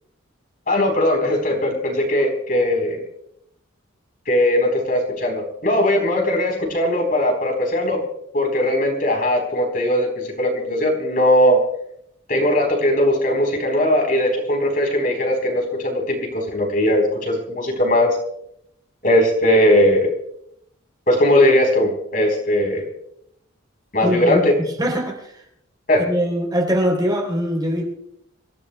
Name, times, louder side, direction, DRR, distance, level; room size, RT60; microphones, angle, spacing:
voice 1, 0.7-3.0 4.3-8.0 8.3-11.6 12.3-18.2 19.0-20.1 21.1-22.9 23.9-24.5 25.9-26.0, left 1 dB, 45° left, 2 dB, 4.0 m, -19 dB
voice 2, 24.0-24.4 24.8-25.3 26.0-27.8, equal, 20° right, 1 dB, 3.6 m, -22 dB
27.5 x 15.5 x 2.3 m, 0.74 s
head